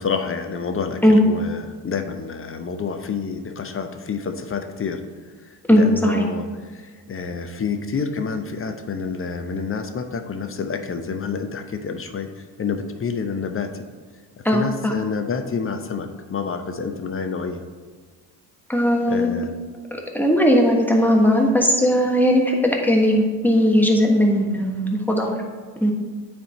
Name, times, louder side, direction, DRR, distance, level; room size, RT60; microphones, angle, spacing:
voice 1, 0.0-5.0 5.4-13.7 14.5-17.6 19.1-19.5, left 5 dB, 25° left, 6 dB, 0.7 m, -28 dB
voice 2, 5.7-6.2 14.4-14.9 18.7-19.3 20.1-25.3 25.8-25.9, equal, 5° left, 0 dB, 1.3 m, -18 dB
9.0 x 3.5 x 4.2 m, 1.5 s
supercardioid pair, 70°, 49 cm